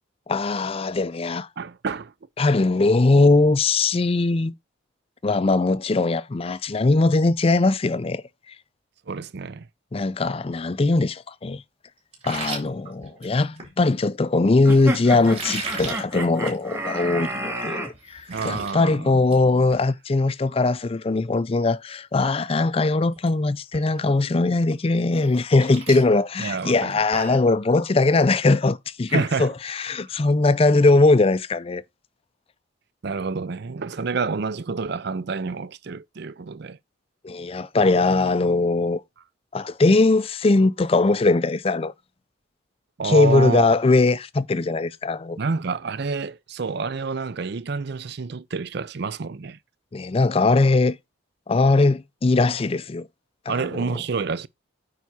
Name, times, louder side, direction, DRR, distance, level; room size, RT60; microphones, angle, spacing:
voice 1, 0.3-1.5 2.4-4.5 5.2-8.2 9.9-11.6 12.2-31.8 37.2-39.0 39.5-41.9 43.0-45.4 49.9-51.0 51.5-53.1 53.5-53.9, left 3 dB, 30° left, 0.4 m, -20 dB
voice 2, 1.6-2.1 9.1-9.7 18.3-19.2 26.4-27.0 27.3-27.5 29.1-29.5 33.0-36.8 43.0-43.8 45.4-49.6 53.5-54.5, right 4 dB, 55° right, 0.5 m, -28 dB
sound 1, 12.1-13.7 15.2-16.0 16.4-16.6 17.0-17.1 17.6-17.7 17.9-18.7 19.1-19.4 19.7-19.8 21.7-21.8 22.2-22.5 22.8-23.3 23.7-23.8 25.2-27.5, right 3 dB, 30° right, 4.2 m, -35 dB
sound 2, 14.6-17.9, right 1 dB, 15° right, 2.4 m, -31 dB
9.2 x 4.7 x 4.2 m
head